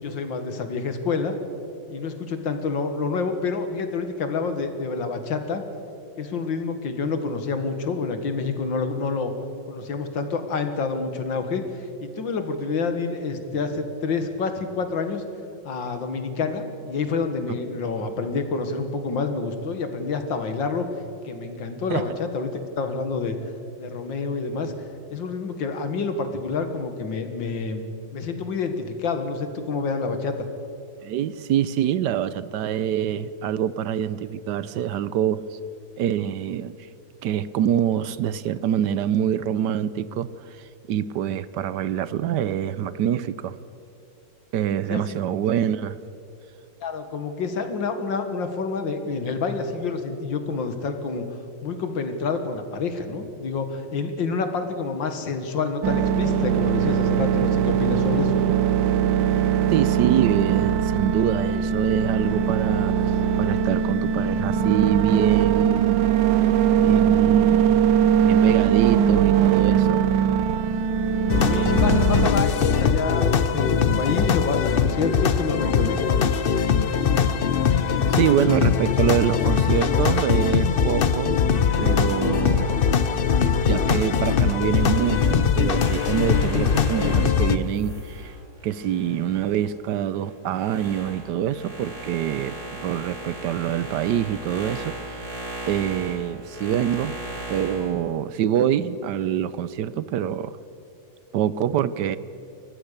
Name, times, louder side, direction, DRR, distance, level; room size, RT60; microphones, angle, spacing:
voice 1, 0.0-1.4 1.9-5.6 6.2-9.3 9.7-15.2 15.6-20.8 21.2-23.4 23.8-24.7 25.1-27.8 28.1-30.4 44.9-45.3 46.8-51.2 51.6-58.4 71.4-76.0, left 4 dB, 80° left, 8 dB, 2.4 m, -28 dB
voice 2, 31.0-35.6 36.0-36.7 37.2-40.6 40.9-43.6 44.5-46.0 59.7-62.9 63.4-66.1 66.8-67.9 68.2-70.1 78.1-81.4 81.8-82.8 83.7-88.3 88.6-95.3 95.6-97.2 97.5-100.6 101.3-102.2, right 10 dB, 75° right, 16 dB, 1.2 m, -25 dB
sound 1, 55.8-72.3, right 8 dB, 90° right, 1.5 m, -21 dB
sound 2, 71.3-87.6, left 6 dB, 60° left, 0.5 m, -21 dB
sound 3, 84.6-89.6 90.1-97.9, right 2 dB, 55° right, 6.5 m, -37 dB
28.5 x 14.0 x 6.8 m, 2.8 s
omnidirectional pair, 2.0 m